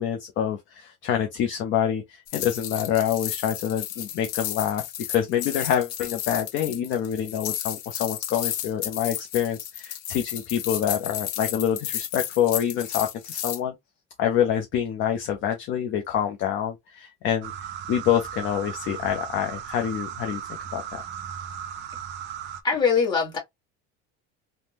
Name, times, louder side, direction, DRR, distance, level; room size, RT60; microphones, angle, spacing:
voice 1, 0.0-4.8 5.1-13.7 14.2-17.5 17.9-20.4 20.7-21.0, left 9 dB, 40° left, 0.5 m, -26 dB
sound 1, 2.3-13.6, left 12 dB, 80° left, 0.7 m, -33 dB
sound 2, 17.4-22.6, right 9 dB, 35° right, 0.4 m, -36 dB
voice 2, 22.6-23.4, left 5 dB, 15° left, 1.4 m, -22 dB
3.4 x 2.0 x 2.8 m
cardioid pair, 170°, 31 cm